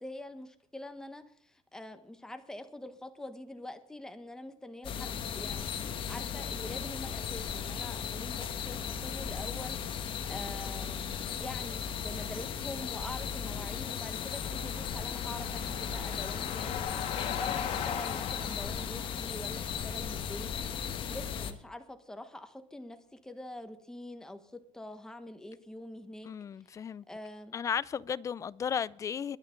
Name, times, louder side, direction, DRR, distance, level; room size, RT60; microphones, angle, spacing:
voice 1, 0.0-20.5 20.8-23.0 23.2-26.3 26.6-26.7 27.1-27.6, left 1 dB, 5° left, 1.3 m, -45 dB
sound 1, 4.8-21.5, left 7 dB, 45° left, 1.4 m, -36 dB
sound 2, 13.4-19.6, left 9 dB, 60° left, 2.4 m, -39 dB
voice 2, 26.2-27.0 27.5-29.4, left 7 dB, 25° left, 0.4 m, -34 dB
22.0 x 9.5 x 3.9 m
cardioid pair, 155°, 12 cm